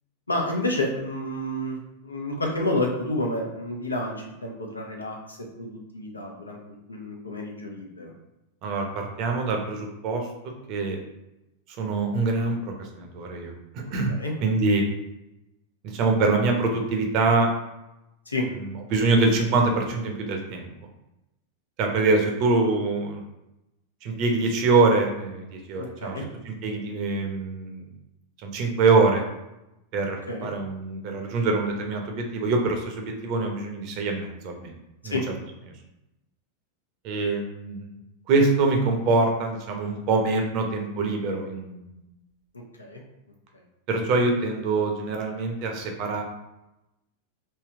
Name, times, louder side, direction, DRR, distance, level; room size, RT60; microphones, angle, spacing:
voice 1, 0.3-8.1 13.8-14.3 18.3-18.4 25.8-26.2 30.3-30.5 35.0-35.2 42.8-43.0, left 1 dB, 80° left, 1 dB, 0.7 m, -30 dB
voice 2, 8.6-10.3 10.7-11.0 11.8-14.8 15.8-17.5 18.5-20.7 21.8-23.2 24.0-27.9 28.4-29.2 29.9-34.7 35.0-35.2 37.0-38.0 38.3-42.0 43.9-46.2, right 3 dB, 40° right, 2 dB, 0.7 m, -24 dB
3.3 x 2.9 x 3.6 m, 0.93 s
figure-of-eight pair, 90°, 0 cm